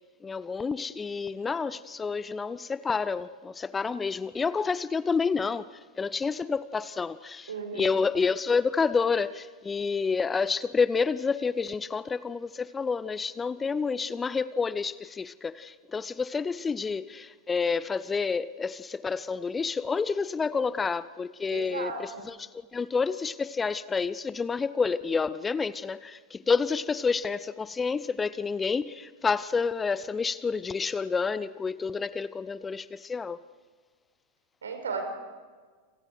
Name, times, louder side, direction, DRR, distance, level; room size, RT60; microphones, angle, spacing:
voice 1, 0.2-5.6 6.0-33.4, left 5 dB, 15° left, 0.6 m, -29 dB
voice 2, 7.5-7.9 21.5-22.2 34.6-35.1, right 4 dB, 70° right, 4.5 m, -35 dB
29.0 x 27.0 x 4.8 m
figure-of-eight pair, 90°, 0 cm